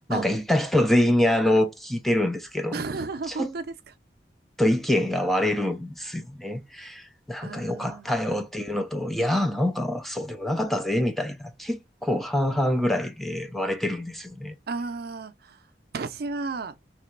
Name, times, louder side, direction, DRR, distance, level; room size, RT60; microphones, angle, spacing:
voice 1, 0.1-2.7 3.3-3.5 4.6-14.6, left 1 dB, ahead, 0.4 m, -25 dB
voice 2, 2.7-3.9 7.4-8.1 14.7-15.6 15.9-16.8, right 3 dB, 60° right, 0.5 m, -33 dB
3.3 x 2.9 x 4.5 m
head